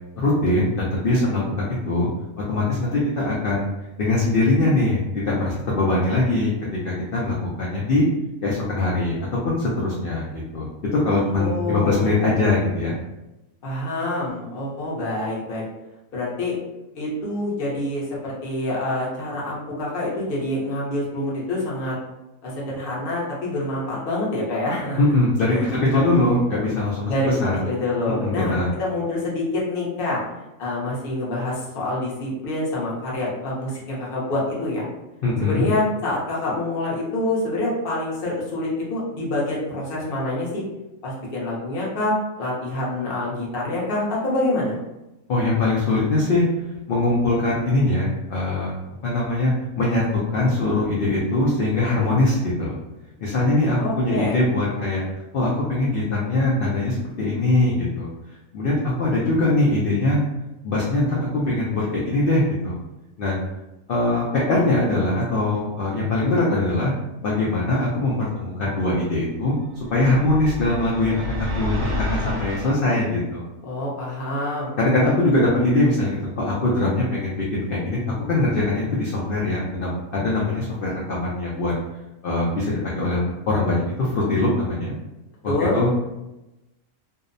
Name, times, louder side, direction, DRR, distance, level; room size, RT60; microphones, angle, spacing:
voice 1, 0.2-2.1 2.5-3.7 4.0-6.5 6.8-8.1 8.4-9.2 9.4-12.9 25.0-25.5 25.8-27.6 28.2-28.7 35.2-35.6 45.3-46.4 46.9-52.8 53.2-55.0 55.3-58.1 58.5-60.2 60.6-62.8 63.2-63.4 63.9-66.9 67.2-69.6 69.9-73.4 74.8-78.0 78.3-81.7 82.2-84.9 85.4-85.9, left 2 dB, 85° left, -5 dB, 0.4 m, -22 dB
voice 2, 11.3-12.4 13.6-15.6 16.1-16.6 16.9-21.9 22.4-25.0 25.5-26.4 27.1-27.3 27.7-30.2 30.6-34.9 35.4-40.6 41.0-44.8 53.7-54.4 73.6-74.8 85.5-85.8, left 2 dB, 50° left, -5 dB, 0.7 m, -26 dB
sound 1, 69.8-72.7, left 1 dB, 65° right, 0.7 m, -29 dB
2.6 x 2.0 x 2.5 m, 0.97 s
omnidirectional pair, 1.5 m